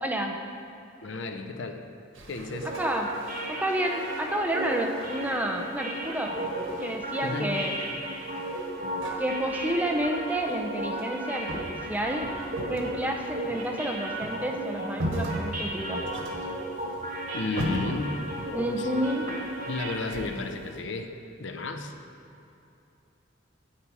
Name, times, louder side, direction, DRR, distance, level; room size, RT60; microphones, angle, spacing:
voice 1, 0.0-0.4 2.6-3.1 3.5-6.4 6.8-7.7 9.2-12.3 12.7-16.0 18.5-19.3, right 1 dB, 10° right, 2 dB, 0.5 m, -30 dB
voice 2, 1.0-1.8 2.3-2.7 7.2-7.5 17.3-18.2 18.8-18.9 19.7-21.1 21.4-21.9, left 3 dB, 65° left, 6 dB, 0.6 m, -33 dB
sound 1, 2.1-20.8, right 1 dB, 90° right, 1.3 m, -40 dB
sound 2, 2.5-20.4, right 1 dB, 40° right, 1.7 m, -35 dB
8.8 x 8.2 x 4.7 m, 2.8 s
head